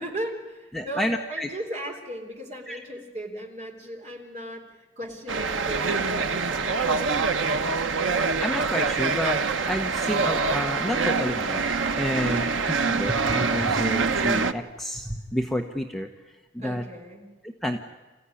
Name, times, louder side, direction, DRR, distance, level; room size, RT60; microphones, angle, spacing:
voice 1, 0.0-8.1 12.1-12.5 16.6-17.3, right 1 dB, 35° right, 2 dB, 3.7 m, -37 dB
voice 2, 0.7-1.5 2.7-2.8 8.4-11.7 11.9-12.5 12.9-16.8 17.4-17.8, equal, ahead, 3 dB, 1.0 m, -30 dB
sound 1, 5.3-14.5, right 4 dB, 90° right, 1.0 m, -25 dB
28.5 x 15.5 x 9.9 m, 1.2 s
head